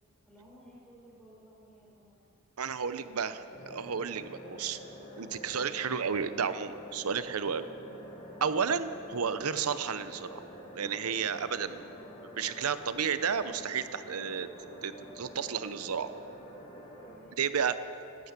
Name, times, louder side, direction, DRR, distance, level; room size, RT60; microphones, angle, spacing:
voice 1, 0.2-2.2 5.1-5.4 7.6-7.9 12.0-12.1 17.0-17.5, right 1 dB, 5° left, -5 dB, 4.8 m, -57 dB
voice 2, 2.6-4.8 5.2-7.6 8.4-10.4 10.7-11.9 12.4-14.5 14.8-16.1 17.4-17.8, right 6 dB, 90° right, 13 dB, 0.7 m, -32 dB
sound 1, 3.5-17.2, equal, 25° left, 3.2 m, -47 dB
12.5 x 12.5 x 8.2 m, 2.6 s
head